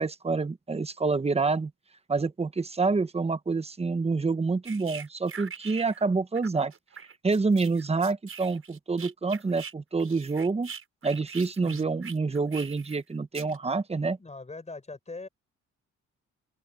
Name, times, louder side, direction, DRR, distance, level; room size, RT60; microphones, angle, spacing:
voice 1, 0.0-1.7 2.1-6.7 7.2-10.7 11.0-14.2, right 4 dB, 20° right, 1.1 m, -27 dB
sound 1, 4.6-6.1 6.3-9.7 10.0-13.0 13.3-13.6, right 6 dB, 45° right, 6.9 m, -43 dB
voice 2, 11.6-12.0 14.2-15.3, left 3 dB, 20° left, 6.3 m, -42 dB
open air
cardioid pair, 90°, 30 cm